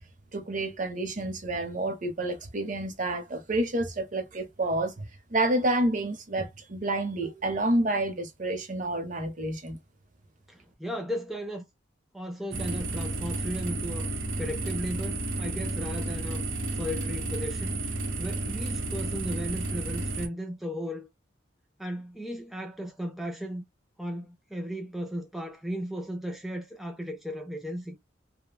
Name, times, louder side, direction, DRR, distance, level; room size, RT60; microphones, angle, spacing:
voice 1, 0.3-5.0 5.3-9.8, right 1 dB, 40° right, 0.7 m, -29 dB
voice 2, 10.5-11.7 12.1-14.1 14.4-16.4 16.7-21.1 21.8-23.6 24.0-28.0, equal, ahead, 0.4 m, -36 dB
sound 1, 12.5-20.3, right 2 dB, 85° right, 0.8 m, -32 dB
3.3 x 2.1 x 2.2 m
head